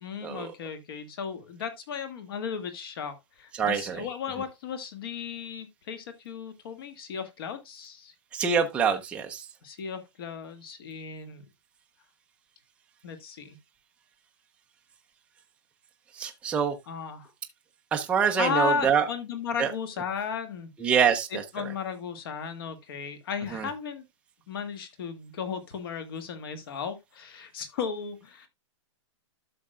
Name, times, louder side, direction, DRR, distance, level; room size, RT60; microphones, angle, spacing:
voice 1, 0.0-8.1 9.6-11.4 13.0-13.6 16.9-17.3 18.4-20.7 21.3-24.0 24.5-28.5, left 6 dB, 50° left, 1.8 m, -35 dB
voice 2, 3.6-4.0 8.3-9.4 16.2-16.8 17.9-19.0 19.6-19.7 20.8-21.4 23.5-23.7, right 7 dB, 5° right, 0.6 m, -25 dB
12.0 x 6.6 x 2.2 m
hypercardioid pair, 165°, 16 cm